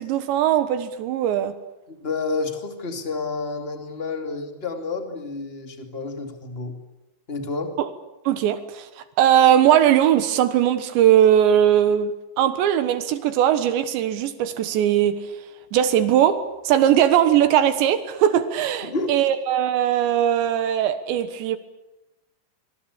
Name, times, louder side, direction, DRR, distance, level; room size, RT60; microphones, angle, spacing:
voice 1, 0.0-1.6 8.3-8.9 9.2-12.1 12.4-15.2 15.7-21.6, right 10 dB, 80° right, 11 dB, 3.5 m, -19 dB
voice 2, 1.9-6.8 7.3-7.8 18.8-19.1, left 3 dB, 20° left, 5 dB, 2.0 m, -30 dB
25.0 x 24.0 x 8.4 m, 0.96 s
omnidirectional pair, 5.1 m